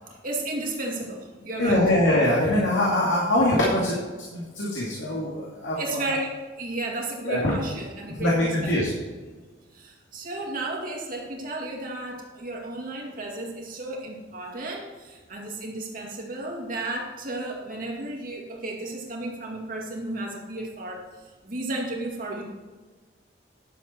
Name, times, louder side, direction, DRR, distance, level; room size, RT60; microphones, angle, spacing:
voice 1, 0.2-1.8 5.8-8.9 9.7-21.1 21.4-22.5, right 2 dB, 45° right, -1 dB, 2.3 m, -33 dB
voice 2, 1.6-3.9 4.3-6.0 7.2-7.5 8.2-8.9, left 1 dB, 90° left, -5 dB, 2.5 m, -23 dB
11.5 x 7.3 x 4.5 m, 1.3 s
head